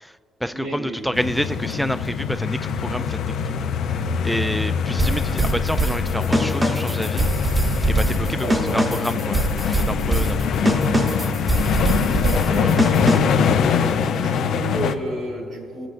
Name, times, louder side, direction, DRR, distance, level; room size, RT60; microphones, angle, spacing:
voice 1, 0.0-3.6 4.2-7.3 7.8-10.7 12.5-12.7, equal, ahead, 11 dB, 0.3 m, -28 dB
voice 2, 0.5-1.2 8.4-8.8 12.3-13.4 14.2-15.9, right 1 dB, 65° right, 0 dB, 2.4 m, -31 dB
sound 1, 1.1-15.0, left 6 dB, 75° left, 0.5 m, -23 dB
sound 2, 5.0-13.5, right 2 dB, 20° right, 1.0 m, -23 dB
19.5 x 7.7 x 2.5 m, 2.9 s
cardioid pair, 90°, 0 cm